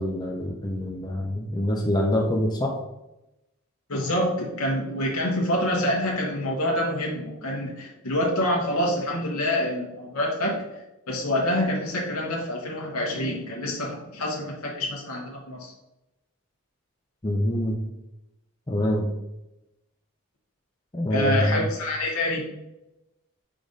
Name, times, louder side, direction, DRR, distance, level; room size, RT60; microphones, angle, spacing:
voice 1, 0.0-2.7 17.2-17.8 18.7-19.1 20.9-21.7, left 1 dB, 20° left, -1 dB, 0.6 m, -25 dB
voice 2, 3.9-10.6 11.1-15.7 21.1-22.4, left 1 dB, 80° left, -2 dB, 1.2 m, -26 dB
5.1 x 5.0 x 4.0 m, 0.92 s
head